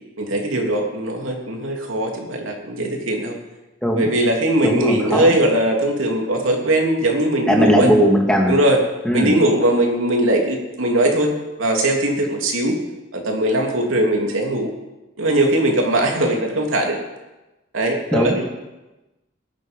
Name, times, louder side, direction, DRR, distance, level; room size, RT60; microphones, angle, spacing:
voice 1, 0.2-3.4 4.0-7.9 8.5-8.8 9.1-12.8 13.1-14.7 15.2-17.0 17.7-18.5, right 1 dB, 85° right, 1 dB, 3.1 m, -20 dB
voice 2, 4.6-5.4 7.5-8.5 9.0-9.3 18.1-18.5, equal, 5° left, 0 dB, 2.3 m, -18 dB
20.0 x 11.0 x 5.4 m, 1.0 s
head